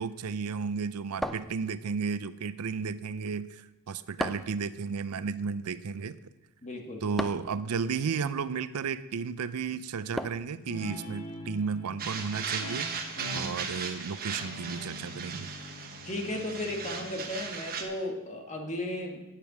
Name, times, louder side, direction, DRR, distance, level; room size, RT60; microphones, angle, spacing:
voice 1, 0.0-6.2 7.0-12.9 13.3-15.5, right 5 dB, 75° right, 15 dB, 0.5 m, -33 dB
sound 1, 1.2-2.1 4.2-4.6 7.2-7.6 10.2-10.6, equal, ahead, 0.4 m, -35 dB
voice 2, 6.6-7.1 16.0-19.2, left 1 dB, 30° left, 2 dB, 1.7 m, -35 dB
Guitar, 10.6-17.8, left 1 dB, 80° left, 1.9 m, -44 dB
sound 2, 12.0-17.8, right 5 dB, 45° right, 1.3 m, -37 dB
10.0 x 8.4 x 6.0 m, 1.0 s
head